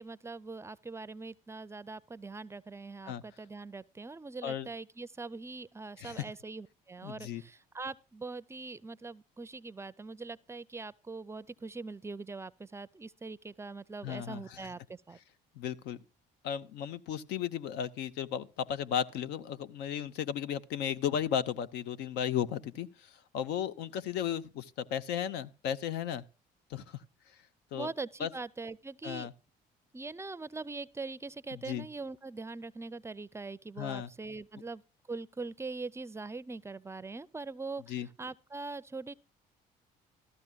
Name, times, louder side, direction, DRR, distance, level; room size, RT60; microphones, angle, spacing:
voice 1, 0.0-15.2 27.7-29.3 29.9-34.8 35.1-39.1, right 3 dB, 15° right, 0.4 m, -42 dB
voice 2, 7.0-7.4 14.0-14.6 15.5-16.0 16.4-26.2 26.7-27.0 27.7-27.9 28.2-28.3 29.0-29.3 31.5-31.9 33.8-34.1 37.9-38.1, left 9 dB, 85° left, 0.8 m, -35 dB
14.0 x 13.5 x 2.3 m
cardioid pair, 110°, 17 cm